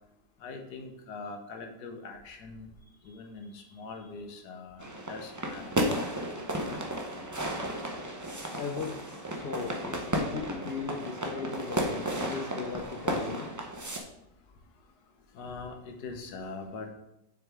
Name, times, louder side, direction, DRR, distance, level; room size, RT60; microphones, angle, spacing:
voice 1, 0.4-2.7 3.0-5.8 13.2-13.3 15.3-16.9, left 3 dB, 80° left, 4 dB, 1.5 m, -42 dB
sound 1, 4.8-14.0, right 1 dB, 25° right, 0.3 m, -33 dB
voice 2, 8.5-9.0 9.3-13.5, left 5 dB, 60° left, 3 dB, 0.6 m, -38 dB
7.0 x 6.4 x 3.5 m, 0.82 s
omnidirectional pair, 1.7 m